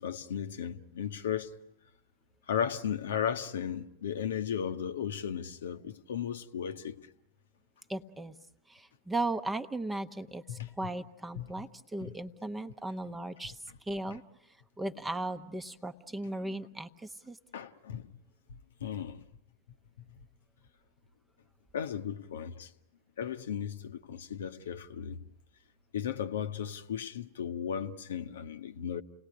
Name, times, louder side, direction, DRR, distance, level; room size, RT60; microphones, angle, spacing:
voice 1, 0.0-1.5 2.5-7.1 10.5-10.7 11.4-11.7 12.0-12.1 17.5-18.1 18.5-19.2 20.0-20.3 21.7-22.7 23.2-25.2 25.9-29.0, left 8 dB, 65° left, 1.0 m, -35 dB
voice 2, 7.9-8.4 8.7-14.2 14.8-17.4, right 2 dB, 10° right, 0.9 m, -37 dB
30.0 x 18.5 x 9.8 m
figure-of-eight pair, 90°, 0 cm